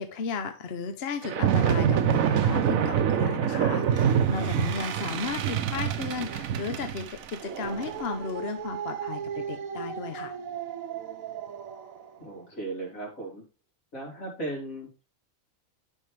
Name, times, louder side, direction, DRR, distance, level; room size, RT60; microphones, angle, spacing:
voice 1, 0.0-10.3, left 5 dB, 55° left, 1.1 m, -34 dB
sound 1, 1.2-11.8, right 8 dB, 85° right, 1.2 m, -27 dB
voice 2, 4.4-4.7 12.2-13.4 13.9-15.0, right 2 dB, 85° left, 3.8 m, -37 dB
9.9 x 6.1 x 3.3 m
omnidirectional pair, 1.4 m